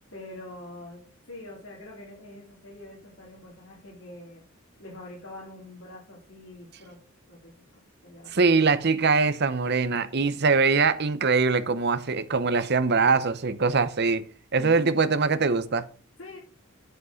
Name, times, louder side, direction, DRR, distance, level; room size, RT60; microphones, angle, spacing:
voice 1, 0.1-4.4 4.8-7.0 7.3-7.5 8.0-8.6 14.5-14.9 16.2-16.4, left 1 dB, 70° left, 3.9 m, -44 dB
voice 2, 8.3-14.2 14.5-15.9, right 4 dB, 50° right, 0.8 m, -22 dB
8.1 x 8.0 x 6.2 m
head